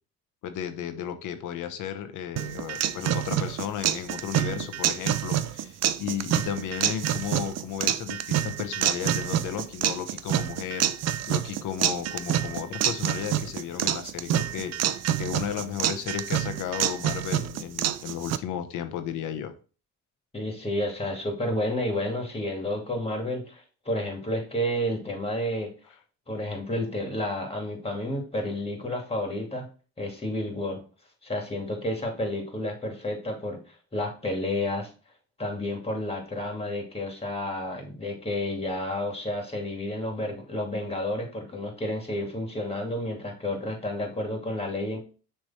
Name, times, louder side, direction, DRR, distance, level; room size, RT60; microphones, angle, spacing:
voice 1, 0.4-10.9 11.3-19.5, left 9 dB, 85° left, 9 dB, 0.9 m, -34 dB
sound 1, 2.4-18.4, right 11 dB, 60° right, 0.5 m, -27 dB
voice 2, 20.3-25.7 26.3-29.7 30.0-30.8 31.2-34.9 35.4-45.0, left 1 dB, 20° left, 2 dB, 2.3 m, -31 dB
6.4 x 3.4 x 4.2 m, 0.37 s
cardioid pair, 90°, 30 cm